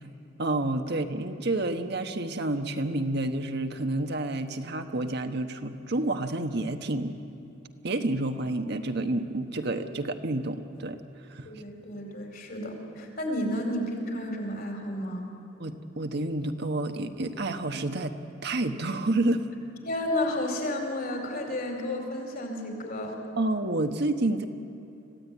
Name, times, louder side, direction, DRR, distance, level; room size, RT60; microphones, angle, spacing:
voice 1, 0.4-7.1 7.8-11.0 11.3-11.5 15.6-18.1 18.4-19.5 23.4-24.4, right 2 dB, 60° right, 6 dB, 1.2 m, -29 dB
voice 2, 11.4-15.3 19.8-23.2, left 1 dB, 50° left, 3 dB, 4.7 m, -32 dB
25.5 x 15.5 x 9.4 m, 2.9 s
head